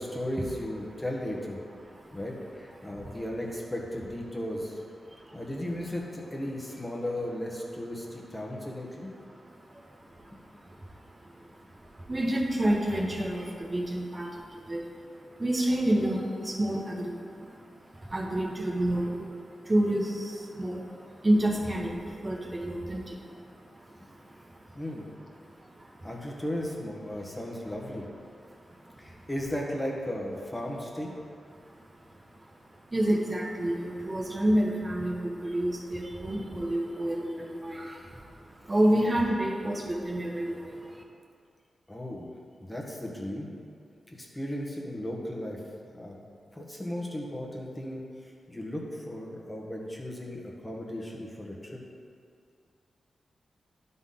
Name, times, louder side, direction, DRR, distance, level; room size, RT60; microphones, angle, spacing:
voice 1, 0.0-1.6 2.1-4.8 5.3-9.1 10.3-10.4 24.7-25.1 26.0-28.1 29.0-31.1 41.9-42.3 42.6-43.5 44.1-45.6 45.9-46.2 46.5-51.8, left 1 dB, 10° left, -2 dB, 1.3 m, -36 dB
voice 2, 1.8-2.2 2.8-3.2 5.0-5.4 8.0-8.2 9.2-25.0 25.4-26.3 27.1-27.3 27.9-28.0 28.4-29.3 31.5-41.0, right 1 dB, 25° right, -2 dB, 1.3 m, -30 dB
12.0 x 4.0 x 3.8 m, 2.3 s
cardioid pair, 80°, 0 cm